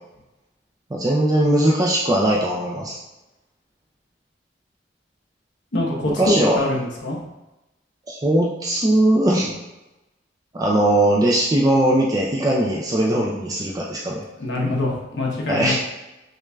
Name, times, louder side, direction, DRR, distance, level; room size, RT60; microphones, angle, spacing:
voice 1, 0.9-3.0 6.2-6.6 8.1-9.5 10.5-14.2 15.5-15.8, right 1 dB, 20° right, -3 dB, 0.4 m, -19 dB
voice 2, 5.7-7.2 14.4-15.8, left 2 dB, 70° left, -2 dB, 0.9 m, -24 dB
6.2 x 2.5 x 2.2 m, 0.99 s
head